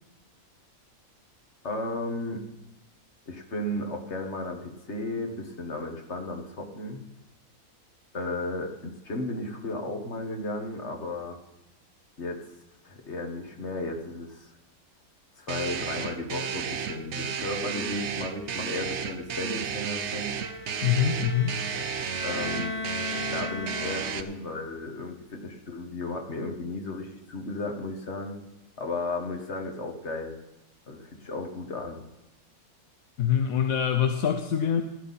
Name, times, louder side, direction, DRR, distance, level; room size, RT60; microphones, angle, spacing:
voice 1, 1.6-2.4 3.3-7.0 8.1-11.4 12.2-12.5 12.8-14.5 15.4-20.3 22.2-22.8 23.3-28.4 28.8-30.4 30.9-32.0, left 2 dB, 50° left, 2 dB, 1.9 m, -34 dB
sound 1, 15.5-24.2, right 7 dB, 55° right, 0.9 m, -33 dB
Bowed string instrument, 20.4-24.5, left 3 dB, 15° left, 0.5 m, -37 dB
voice 2, 20.8-21.6 33.2-34.8, left 8 dB, 70° left, 6 dB, 1.2 m, -24 dB
15.5 x 11.5 x 4.2 m, 0.91 s
omnidirectional pair, 1.5 m